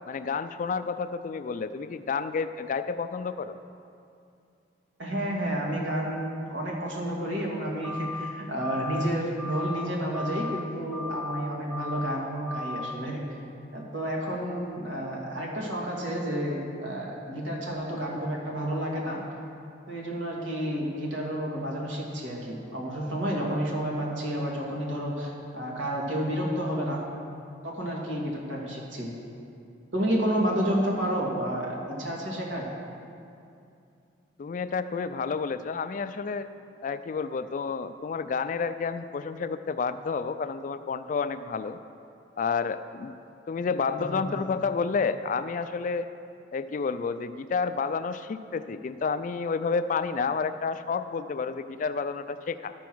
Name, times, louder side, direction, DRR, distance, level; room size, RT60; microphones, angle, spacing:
voice 1, 0.1-3.6 34.4-36.5 36.8-41.8 42.4-43.2 43.5-46.1 46.5-52.7, left 5 dB, 45° left, 12 dB, 0.3 m, -30 dB
voice 2, 5.0-13.2 13.7-19.2 19.9-27.0 27.6-29.1 29.9-32.7 43.5-43.6 44.0-44.4, equal, 80° right, -3 dB, 2.0 m, -30 dB
sound 1, 7.8-8.3 8.6-9.1 9.4-9.9 10.1-10.6 10.9-11.4 11.7-12.2 12.5-12.9, left 2 dB, 10° right, 0.5 m, -36 dB
12.5 x 4.7 x 6.1 m, 2.5 s
head